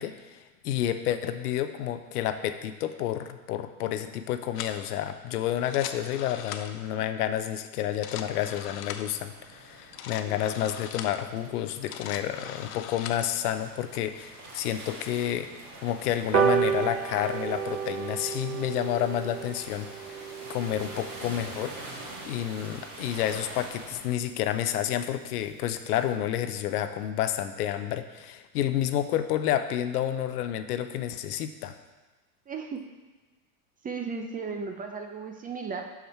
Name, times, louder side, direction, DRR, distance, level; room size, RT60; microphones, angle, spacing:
voice 1, 0.0-15.5 15.8-20.2 20.5-21.8 22.2-31.8, left 11 dB, 75° left, 10 dB, 0.7 m, -30 dB
sound 1, 4.5-4.8 5.6-6.9 7.8-9.2 9.8-11.2 11.7-13.3, left 9 dB, 30° left, 0.4 m, -40 dB
sound 2, 8.1-24.0, right 2 dB, 45° right, 2.1 m, -45 dB
sound 3, 16.3-23.1 23.5-23.6 23.9-24.0 24.3-24.4 24.7-24.8 25.1-25.4 25.8-25.9, right 8 dB, 70° right, 0.9 m, -31 dB
voice 2, 32.5-32.8 33.8-35.8, right 5 dB, 20° right, 4 dB, 0.6 m, -35 dB
6.3 x 5.7 x 4.4 m, 1.2 s
hypercardioid pair, 100°, 46 cm